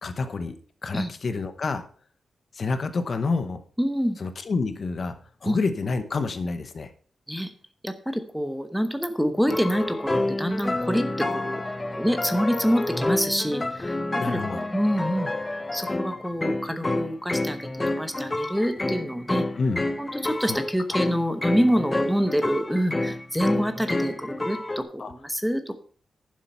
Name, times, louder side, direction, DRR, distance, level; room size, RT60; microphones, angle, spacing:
voice 1, 0.0-1.9 2.5-3.6 4.2-5.2 5.4-6.9 14.2-14.7 19.5-19.8 20.4-20.6 25.0-25.1, left 4 dB, 40° left, 10 dB, 0.9 m, -28 dB
voice 2, 3.8-4.2 5.4-5.6 7.3-7.5 7.8-11.6 12.0-14.0 14.3-19.4 20.0-25.8, equal, ahead, 9 dB, 1.0 m, -26 dB
sound 1, 9.5-24.8, left 2 dB, 15° left, 0.7 m, -29 dB
11.5 x 7.4 x 5.6 m, 0.44 s
wide cardioid pair, 175°, 0 cm